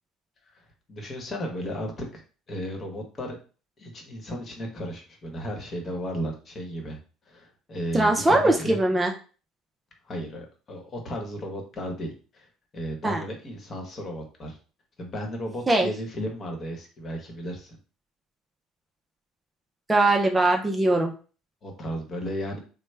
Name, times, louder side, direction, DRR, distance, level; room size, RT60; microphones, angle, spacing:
voice 1, 0.9-2.2 2.5-3.4 3.8-7.0 7.3-8.8 10.1-12.5 12.7-14.6 15.0-17.8 21.6-22.6, equal, 40° left, 2 dB, 1.1 m, -34 dB
voice 2, 7.9-9.1 13.0-13.2 15.7-15.9 19.9-21.1, right 2 dB, 15° right, 2 dB, 0.5 m, -21 dB
3.1 x 2.1 x 3.3 m, 0.37 s
hypercardioid pair, 75°, 0 cm